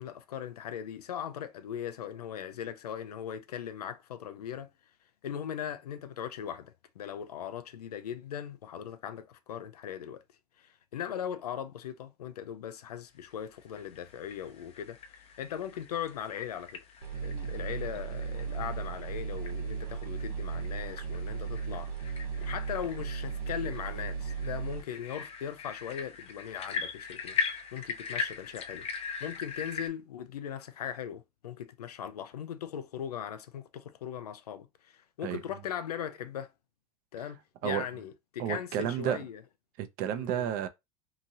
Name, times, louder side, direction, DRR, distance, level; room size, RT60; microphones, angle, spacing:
voice 1, 0.0-4.7 5.2-10.2 10.6-15.0 15.4-16.8 17.2-28.9 29.2-36.5 37.1-39.4 40.1-40.5, left 9 dB, 80° left, 0.5 m, -39 dB
sound 1, 13.5-29.9, left 6 dB, 30° left, 0.6 m, -41 dB
sound 2, 17.0-24.8, right 5 dB, 80° right, 0.9 m, -36 dB
voice 2, 38.4-39.2 39.8-40.7, right 10 dB, 45° right, 0.6 m, -31 dB
2.9 x 2.6 x 2.7 m
hypercardioid pair, 90°, 20 cm